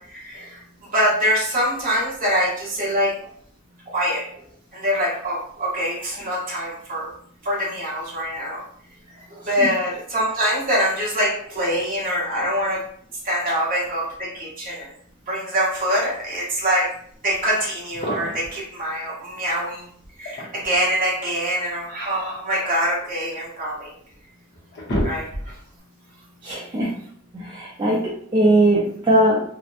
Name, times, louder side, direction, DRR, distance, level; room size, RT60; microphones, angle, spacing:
voice 1, 0.0-3.1 3.9-4.2 4.7-7.1 7.4-8.6 9.3-12.8 13.2-14.9 15.3-16.9 17.2-19.8 20.2-23.9 25.0-25.5, equal, 40° right, -5 dB, 0.9 m, -24 dB
sound 1, 17.8-18.6 20.0-20.9 22.1-23.5 24.1-24.2 24.5-25.7, equal, 55° left, 0.7 m, -30 dB
voice 2, 26.4-26.9 27.3-29.4, right 1 dB, 20° right, -5 dB, 0.4 m, -19 dB
2.8 x 2.0 x 2.4 m, 0.62 s
head